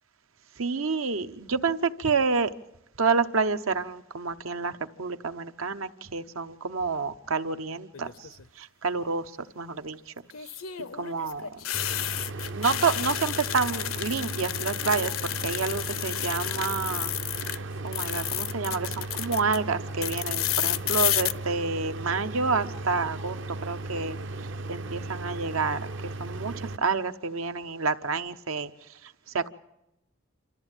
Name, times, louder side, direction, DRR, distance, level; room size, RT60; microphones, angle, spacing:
voice 1, 0.6-2.5 3.0-4.7 5.0-8.3 8.6-10.1 10.4-10.6 11.0-11.6 12.5-24.2 24.7-25.8 26.2-28.7 29.0-29.5, right 4 dB, 85° right, 0.9 m, -29 dB
sound 1, 7.9-8.4 10.3-17.6 17.9-19.6 20.0-21.3, left 13 dB, 85° left, 0.7 m, -31 dB
sound 2, 11.7-26.8, right 2 dB, 65° right, 0.7 m, -36 dB
28.0 x 13.5 x 9.0 m
head